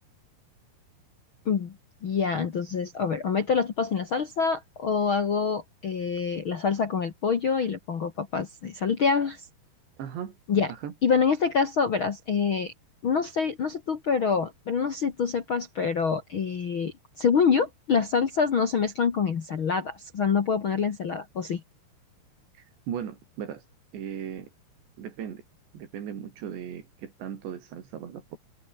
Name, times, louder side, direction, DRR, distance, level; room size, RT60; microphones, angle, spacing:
voice 1, 2.0-9.4 10.5-10.7 11.0-12.7 13.0-21.6, left 6 dB, 65° left, 1.2 m, -26 dB
voice 2, 10.0-10.4 10.7-10.9 22.6-23.7 23.9-24.5 25.0-25.4 25.7-28.4, right 8 dB, 80° right, 5.4 m, -37 dB
omnidirectional pair, 5.0 m